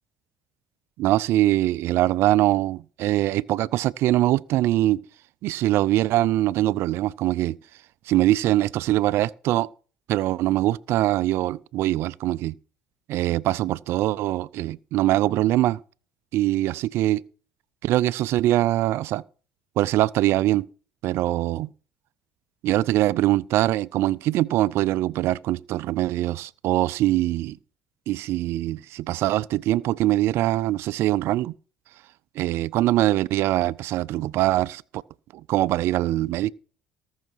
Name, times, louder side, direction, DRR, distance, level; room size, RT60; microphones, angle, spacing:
voice 1, 1.0-5.0 5.4-7.6 8.1-9.7 10.1-12.5 13.1-15.8 16.3-17.2 17.8-19.2 19.8-20.7 21.0-21.7 22.6-27.6 28.1-31.5 32.4-35.0 35.5-36.5, right 15 dB, 65° right, 0.4 m, -23 dB
18.5 x 6.4 x 4.5 m
hypercardioid pair, 65°, 4 cm